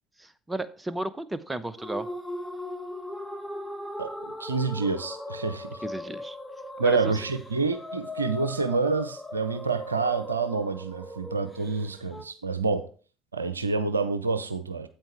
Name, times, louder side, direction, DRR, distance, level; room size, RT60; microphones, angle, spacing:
voice 1, 0.2-2.1 5.8-6.4 6.8-7.1, right 2 dB, 15° right, 14 dB, 0.8 m, -33 dB
sound 1, 1.8-12.2, left 1 dB, ahead, 1.3 m, -38 dB
voice 2, 4.0-5.8 6.8-12.9 13.3-14.9, right 4 dB, 85° right, 12 dB, 0.5 m, -28 dB
8.9 x 8.5 x 3.3 m, 0.38 s
figure-of-eight pair, 55°, 0 cm